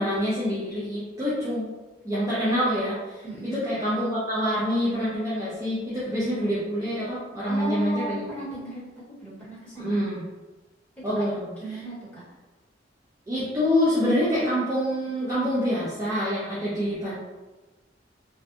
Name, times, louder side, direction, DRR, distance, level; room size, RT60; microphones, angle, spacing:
voice 1, 0.0-1.7 2.0-3.2 3.6-8.2 9.8-10.2 11.0-11.4 13.3-17.2, equal, 20° right, -10 dB, 0.5 m, -26 dB
voice 2, 3.2-3.6 7.5-10.2 11.0-11.2 11.6-12.2, equal, 10° left, -11 dB, 1.1 m, -36 dB
2.6 x 2.2 x 2.5 m, 1.2 s
head